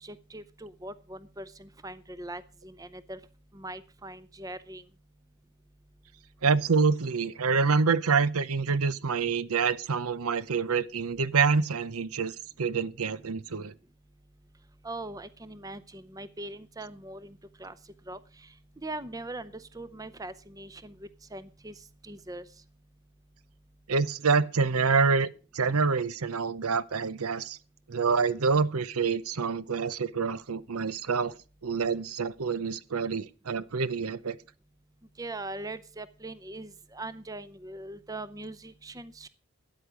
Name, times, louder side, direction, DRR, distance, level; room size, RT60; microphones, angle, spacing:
voice 1, 0.0-3.2 3.5-4.8 14.8-17.7 18.1-18.5 18.8-21.7 22.0-22.4 35.2-39.3, right 2 dB, 15° right, 0.6 m, -41 dB
voice 2, 6.4-12.3 12.6-13.7 23.9-25.3 25.5-27.6 27.9-31.3 31.6-34.4, right 5 dB, 90° right, 0.7 m, -26 dB
13.0 x 9.9 x 5.1 m
head